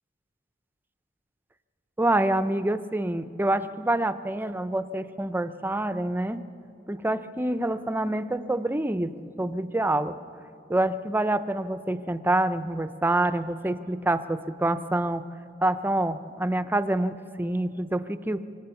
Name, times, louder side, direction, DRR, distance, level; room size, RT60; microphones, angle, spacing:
voice 1, 2.0-6.4 6.9-10.2 10.7-15.2 15.6-18.4, right 1 dB, 10° right, 12 dB, 0.5 m, -26 dB
25.0 x 17.5 x 6.9 m, 2.7 s
head